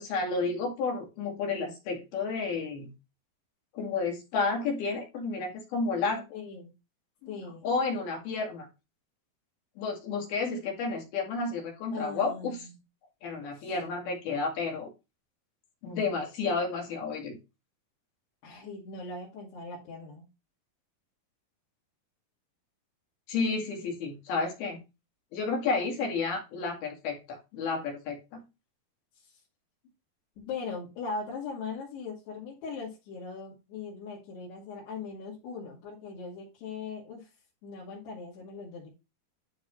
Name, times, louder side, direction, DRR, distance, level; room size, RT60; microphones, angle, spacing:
voice 1, 0.0-2.9 3.7-6.2 7.2-7.3 7.6-8.7 9.8-12.6 13.2-14.9 15.8-17.4 23.3-24.8 25.3-28.4, left 4 dB, 70° left, 1 dB, 3.9 m, -31 dB
voice 2, 6.3-6.7 7.3-7.7 11.9-12.8 13.5-13.7 18.4-20.3 29.2-29.3 30.4-37.3 37.6-38.9, left 4 dB, 90° left, -6 dB, 4.3 m, -40 dB
12.0 x 4.1 x 3.1 m, 0.26 s
omnidirectional pair, 4.6 m